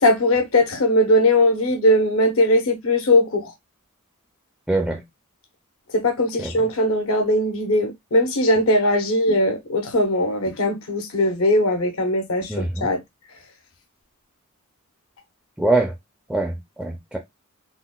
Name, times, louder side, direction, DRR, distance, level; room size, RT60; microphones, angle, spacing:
voice 1, 0.0-3.5 5.9-12.5 12.8-13.0, left 1 dB, 65° left, 0.8 m, -19 dB
voice 2, 4.7-5.0 6.4-6.5 12.5-12.9 15.6-15.9 16.3-17.2, right 2 dB, ahead, 0.4 m, -23 dB
3.9 x 2.1 x 2.2 m
head